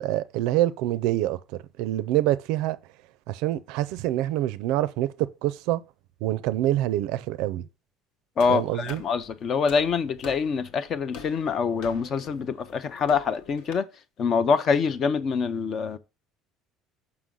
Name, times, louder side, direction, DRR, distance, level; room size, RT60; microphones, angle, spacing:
voice 1, 0.0-1.4 1.8-2.8 3.3-5.8 6.2-7.7 8.5-9.0, right 14 dB, 70° right, 0.4 m, -26 dB
sound 1, 8.4-13.7, left 5 dB, 75° left, 1.3 m, -46 dB
voice 2, 8.4-13.9 14.2-16.0, left 5 dB, 30° left, 0.5 m, -25 dB
6.3 x 5.9 x 3.8 m
cardioid pair, 175°, 0 cm